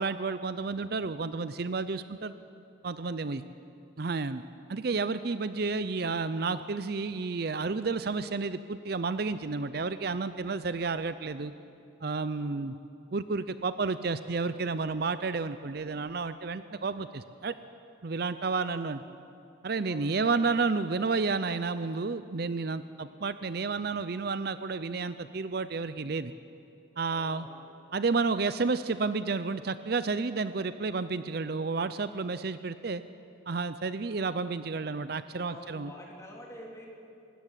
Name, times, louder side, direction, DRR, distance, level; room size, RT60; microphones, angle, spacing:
voice 1, 0.0-2.3 2.8-3.4 4.0-4.4 4.7-11.5 12.0-12.7 13.1-17.5 18.0-19.0 19.6-26.3 27.0-27.5 27.9-33.0 33.5-35.9, right 4 dB, 50° right, 13 dB, 0.5 m, -31 dB
voice 2, 12.4-12.7 18.6-18.8 19.8-20.5 22.9-23.2 27.1-27.6 35.4-36.9, left 1 dB, 15° left, -2 dB, 3.5 m, -49 dB
24.0 x 13.5 x 10.0 m, 2.6 s
head